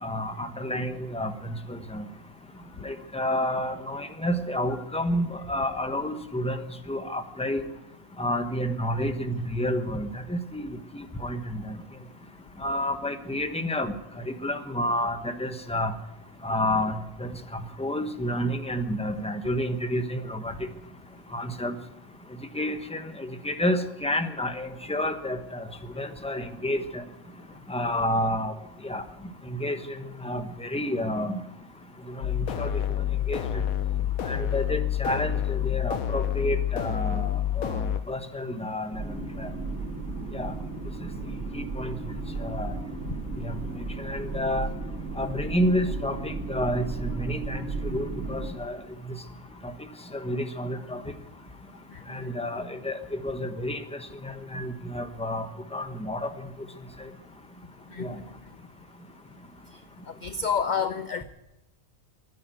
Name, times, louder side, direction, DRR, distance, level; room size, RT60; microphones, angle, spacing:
voice 1, 0.0-1.3 1.7-2.0 2.8-6.6 6.9-7.6 8.2-11.8 12.6-13.9 14.4-15.9 16.4-17.3 17.8-20.5 21.3-21.7 22.5-25.6 26.0-27.0 27.7-28.5 28.8-29.0 29.5-29.8 30.2-31.4 32.2-32.7 33.3-33.4 34.2-39.0 39.4-39.5 40.3-40.5 41.5-42.0 42.4-42.7 43.4-43.5 44.0-44.7 45.2-47.6 47.9-48.8 49.1-49.2 50.1-51.0 52.1-53.8 54.2-55.4 55.7-56.3 58.0-58.2, left 1 dB, 5° left, 7 dB, 1.0 m, -29 dB
sound 1, 32.2-38.0, left 10 dB, 85° left, 1.2 m, -28 dB
sound 2, 38.9-48.5, right 3 dB, 65° right, 2.7 m, -34 dB
voice 2, 60.2-61.2, left 6 dB, 50° left, 10 dB, 0.6 m, -28 dB
14.0 x 10.5 x 9.3 m, 0.92 s
omnidirectional pair, 1.4 m